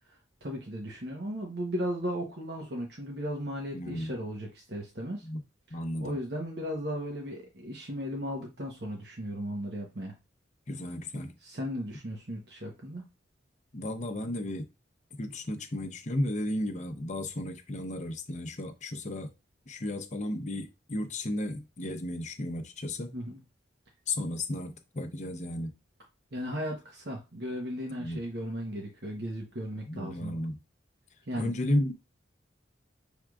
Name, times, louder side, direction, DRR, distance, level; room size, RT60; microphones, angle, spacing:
voice 1, 0.1-5.3 6.0-10.1 11.4-13.0 23.1-23.4 26.3-30.4 31.3-31.5, equal, 55° right, 0 dB, 1.0 m, -36 dB
voice 2, 3.7-4.1 5.2-5.4 5.7-6.2 10.7-11.4 13.7-14.7 15.2-19.3 19.7-23.1 24.1-25.7 28.0-28.2 29.9-30.6 31.4-31.9, left 1 dB, 35° left, 6 dB, 0.7 m, -33 dB
6.2 x 3.5 x 2.3 m, 0.26 s
head